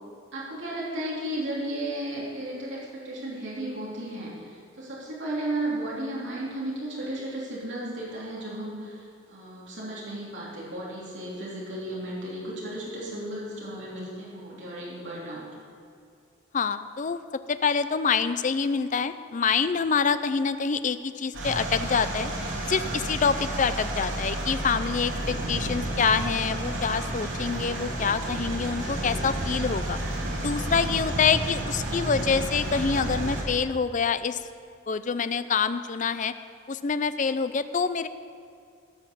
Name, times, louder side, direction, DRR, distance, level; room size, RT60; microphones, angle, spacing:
voice 1, 0.3-15.4, right 1 dB, 65° right, -6 dB, 3.2 m, -34 dB
voice 2, 16.5-17.2 17.5-22.3 22.7-30.0 30.4-34.4 34.9-36.3 36.7-38.1, left 5 dB, 40° left, 13 dB, 0.4 m, -26 dB
sound 1, 21.3-33.4, right 1 dB, 80° right, 2.9 m, -31 dB
17.0 x 6.1 x 6.9 m, 2.4 s
head